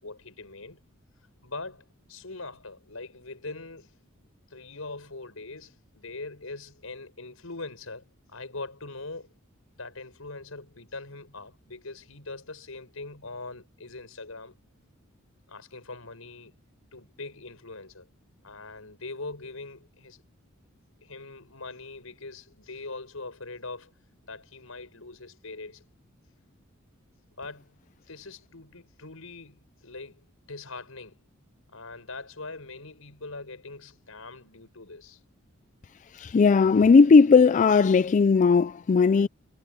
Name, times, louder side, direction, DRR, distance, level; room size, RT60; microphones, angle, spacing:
voice 1, 0.0-0.8 1.4-3.9 4.5-9.3 9.8-14.6 15.5-16.5 16.9-18.1 18.4-20.2 21.0-23.9 24.2-25.8 27.4-27.8 28.1-31.2 31.7-35.2, left 3 dB, 90° left, 5.7 m, -42 dB
voice 2, 36.1-39.3, left 5 dB, 35° left, 0.3 m, -18 dB
head